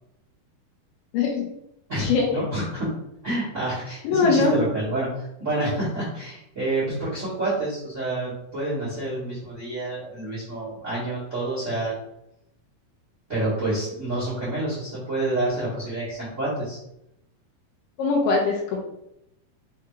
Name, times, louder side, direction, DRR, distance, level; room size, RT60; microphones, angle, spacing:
voice 1, 1.1-1.5 2.0-2.3 4.0-4.5 18.0-18.8, left 4 dB, 80° left, -1 dB, 2.4 m, -21 dB
voice 2, 1.9-2.9 3.2-11.9 13.3-16.8, right 1 dB, 70° right, -9 dB, 0.7 m, -28 dB
5.7 x 2.3 x 3.0 m, 0.83 s
omnidirectional pair, 4.0 m